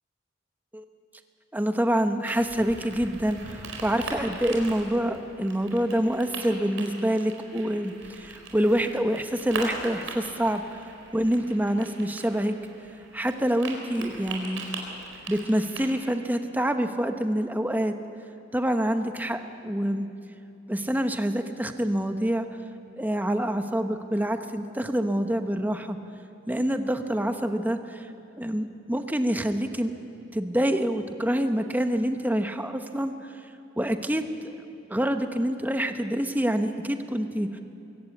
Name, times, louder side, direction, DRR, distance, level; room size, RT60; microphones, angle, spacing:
voice 1, 1.5-10.8 11.1-12.6 13.1-14.6 15.3-17.9 18.5-20.1 20.7-22.5 23.0-26.0 26.5-28.1 28.4-29.9 30.3-33.1 33.8-34.5 34.9-37.6, equal, 10° right, 7 dB, 1.0 m, -26 dB
sound 1, 2.3-15.9, right 3 dB, 85° right, 4.3 m, -40 dB
23.0 x 17.0 x 8.4 m, 2.8 s
head